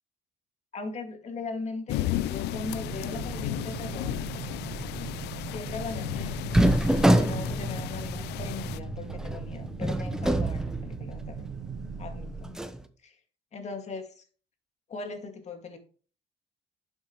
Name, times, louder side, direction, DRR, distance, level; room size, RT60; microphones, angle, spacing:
voice 1, 0.7-4.2 5.5-6.4 7.1-11.5 12.0-12.6 13.0-13.2 13.5-14.2 14.9-15.8, left 3 dB, 40° left, 5 dB, 2.2 m, -39 dB
sound 1, 1.9-8.8, left 14 dB, 80° left, 0.5 m, -34 dB
sound 2, 2.5-12.5, right 6 dB, 55° right, 1.2 m, -39 dB
sound 3, 6.5-11.4 11.8-11.9 12.4-12.8, right 1 dB, 5° right, 0.9 m, -26 dB
10.5 x 7.3 x 3.1 m, 0.39 s
cardioid pair, 110°, 17 cm